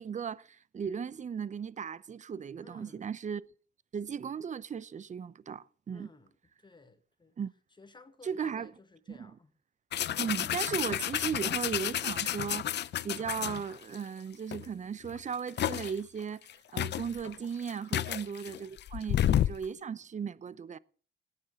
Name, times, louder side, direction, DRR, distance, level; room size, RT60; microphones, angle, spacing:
voice 1, 0.0-3.4 3.9-6.1 7.4-7.5 8.2-8.7 9.1-9.3 10.2-16.4 16.7-20.8, right 7 dB, 35° right, 0.8 m, -37 dB
voice 2, 2.6-3.0 5.9-6.3 6.6-7.3 7.8-9.5 18.1-18.4, left 3 dB, 25° left, 1.6 m, -56 dB
sound 1, 9.9-14.0 14.5-14.7 15.0-16.0 16.5-16.6 16.8-19.7, left 11 dB, 60° left, 0.6 m, -31 dB
18.0 x 9.4 x 6.3 m
cardioid pair, 90°, 20 cm